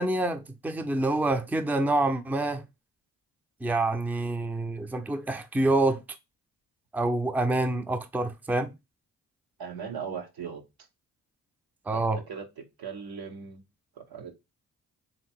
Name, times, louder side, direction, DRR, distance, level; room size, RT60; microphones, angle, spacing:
voice 1, 0.0-2.6 3.6-6.0 6.9-8.7 11.9-12.2, right 2 dB, 5° right, 0.5 m, -27 dB
voice 2, 9.6-10.6 11.9-12.4 12.8-13.6 14.0-14.3, right 6 dB, 75° right, 1.1 m, -38 dB
3.5 x 2.8 x 4.4 m
supercardioid pair, 55°, 38 cm